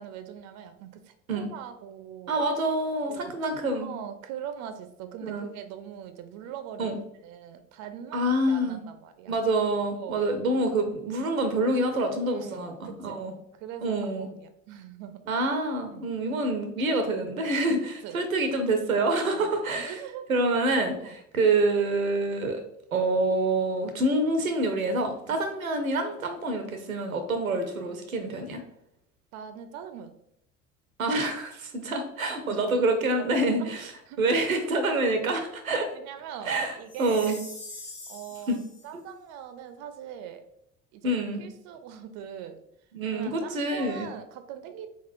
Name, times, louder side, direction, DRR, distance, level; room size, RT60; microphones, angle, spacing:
voice 1, 0.0-2.4 3.1-3.3 3.8-6.9 7.2-8.2 8.5-9.4 10.0-10.2 12.3-13.2 13.6-15.2 15.9-16.1 17.8-18.2 19.3-20.2 21.0-21.2 25.3-25.4 29.3-30.1 32.5-32.7 33.2-33.7 34.1-34.2 34.9-35.0 35.4-35.5 35.9-37.4 38.1-40.4 40.9-42.6 43.1-44.9, right 9 dB, 40° right, 9 dB, 0.5 m, -42 dB
voice 2, 2.3-3.9 5.2-5.5 6.8-7.0 8.1-8.8 9.3-13.3 13.8-14.3 15.3-20.0 20.3-22.6 22.9-28.6 31.0-33.9 34.2-35.9 36.5-37.4 38.5-38.6 38.9-39.0 41.0-41.4 42.9-44.1, right 2 dB, 85° right, 6 dB, 0.6 m, -27 dB
Chime, 36.9-38.9, left 2 dB, 15° left, 0.9 m, -43 dB
3.7 x 3.5 x 2.5 m, 0.76 s
figure-of-eight pair, 60°, 41 cm